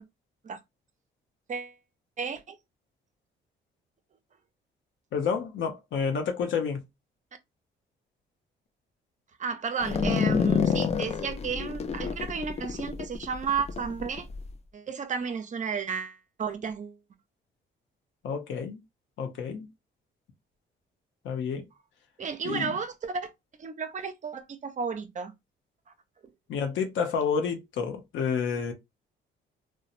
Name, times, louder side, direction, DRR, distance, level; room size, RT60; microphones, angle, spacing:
voice 1, 2.2-2.6 9.4-14.3 14.7-17.0 22.2-23.3 23.6-25.3, right 6 dB, 40° right, 0.5 m, -33 dB
voice 2, 5.1-6.8 18.2-18.8 19.2-19.7 21.2-21.6 22.4-22.7 26.5-28.7, left 6 dB, 70° left, 0.7 m, -29 dB
sound 1, 9.8-14.5, left 6 dB, 35° left, 0.4 m, -28 dB
2.9 x 2.1 x 2.5 m
cardioid pair, 90°, 20 cm